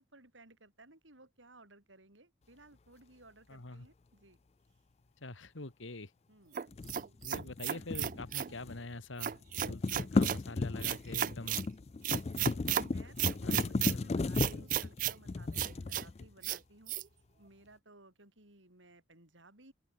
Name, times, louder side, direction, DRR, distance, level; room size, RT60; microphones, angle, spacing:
voice 1, 0.0-4.4 6.3-6.6 12.3-17.0 17.4-19.7, right 2 dB, 80° right, 6.2 m, -59 dB
voice 2, 3.5-3.9 5.2-6.1 7.2-9.4 9.7-11.7 13.3-13.9, left 2 dB, 90° left, 2.0 m, -45 dB
sound 1, 6.5-8.5 9.2-10.4 10.8-11.6 12.0-12.8 13.2-13.9 14.3-15.2 15.5-16.0 16.4-16.6 16.9-17.0, right 11 dB, 45° right, 0.3 m, -34 dB
sound 2, 6.7-8.9 9.2-16.5, left 3 dB, 35° left, 0.4 m, -35 dB
open air
head